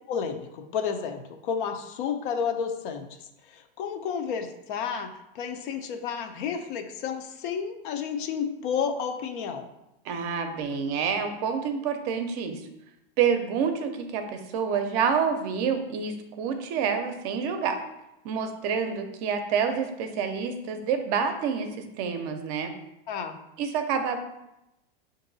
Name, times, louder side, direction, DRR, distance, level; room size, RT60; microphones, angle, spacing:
voice 1, 0.1-3.1 3.4-5.1 5.3-9.7 23.1-23.4, left 6 dB, 60° left, 6 dB, 0.6 m, -31 dB
voice 2, 10.0-12.6 13.2-17.8 18.2-22.7 23.6-24.2, right 6 dB, 45° right, 6 dB, 0.6 m, -28 dB
4.6 x 2.6 x 3.9 m, 0.90 s
supercardioid pair, 135°, 29 cm